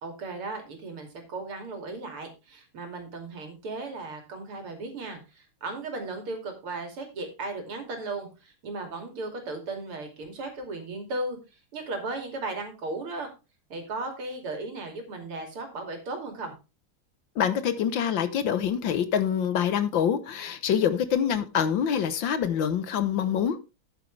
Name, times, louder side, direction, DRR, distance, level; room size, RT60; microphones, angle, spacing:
voice 1, 0.0-11.4 11.7-13.3 13.7-16.5, right 2 dB, 90° right, 3.6 m, -36 dB
voice 2, 17.3-23.6, left 8 dB, 65° left, 1.7 m, -25 dB
10.0 x 9.1 x 3.3 m
omnidirectional pair, 2.3 m